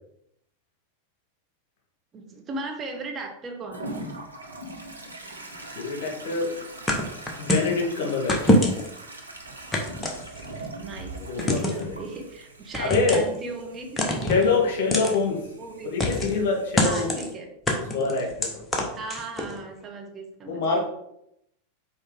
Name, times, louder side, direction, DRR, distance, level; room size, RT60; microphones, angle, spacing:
voice 1, 2.1-3.9 10.8-14.7 15.6-15.9 16.8-17.5 18.9-20.8, right 3 dB, 25° right, 2 dB, 1.0 m, -37 dB
Toilet flush, 3.7-17.3, right 2 dB, 80° right, 0.9 m, -42 dB
voice 2, 5.8-6.5 7.4-8.6 11.3-11.9 12.8-13.2 14.3-15.4 15.9-17.1 17.9-18.5 20.4-20.8, left 4 dB, 50° left, 1 dB, 1.7 m, -25 dB
sound 1, 6.9-7.7 8.3-9.0 9.7-10.7 11.4-11.9 12.7-13.4 14.0-14.5 14.9-15.2 16.0-16.4 16.8-17.3 17.7-19.5, left 1 dB, 15° left, 1.2 m, -24 dB
5.4 x 4.7 x 3.7 m, 0.77 s
figure-of-eight pair, 90°, 0 cm